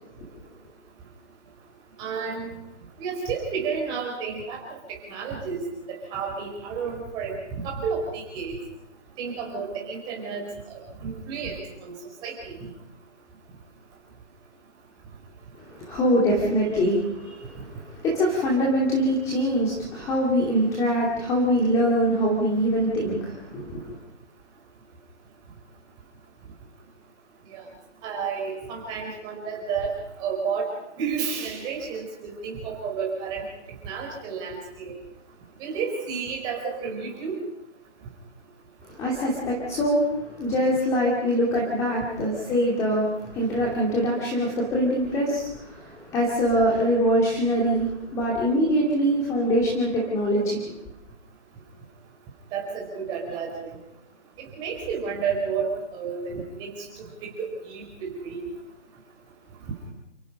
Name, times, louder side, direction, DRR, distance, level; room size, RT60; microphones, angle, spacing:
voice 1, 2.0-2.5 3.0-5.6 5.9-7.4 7.6-8.5 9.2-11.9 12.2-12.5 27.5-27.7 28.0-29.9 30.2-30.7 31.0-33.4 33.8-35.0 35.6-37.4 52.5-53.8 54.4-56.7 57.0-58.4, right 5 dB, 10° right, 0 dB, 4.6 m, -31 dB
voice 2, 15.6-24.0 38.8-50.7, equal, 10° left, -3 dB, 2.5 m, -24 dB
29.5 x 17.0 x 5.5 m, 0.84 s
hypercardioid pair, 165°, 35 cm